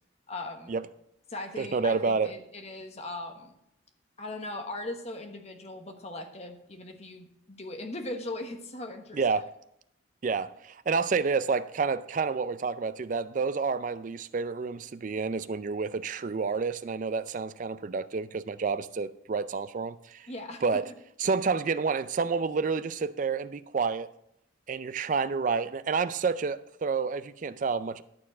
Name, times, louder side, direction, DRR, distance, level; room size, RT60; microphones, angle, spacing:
voice 1, 0.3-0.7 1.3-3.5 4.2-9.2 20.3-20.6, left 2 dB, 35° left, 1.1 m, -39 dB
voice 2, 1.6-2.3 9.1-9.5 10.2-20.3 20.6-20.9 21.2-24.1 24.7-28.0, right 5 dB, 40° right, 0.4 m, -29 dB
11.5 x 4.4 x 7.3 m
head